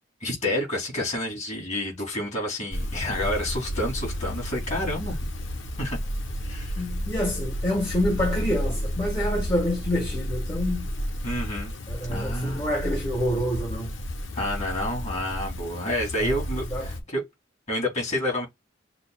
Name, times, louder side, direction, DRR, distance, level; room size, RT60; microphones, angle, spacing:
voice 1, 0.2-5.2 5.8-6.0 6.4-6.7 11.2-11.7 12.1-12.6 14.3-17.2 17.7-18.5, left 1 dB, 35° left, 3.0 m, -29 dB
sound 1, 2.7-17.0, equal, 85° left, 1.2 m, -31 dB
voice 2, 6.7-10.9 11.9-13.9 16.2-16.4 16.7-16.9, equal, 20° left, 1.4 m, -27 dB
6.7 x 2.4 x 2.4 m
head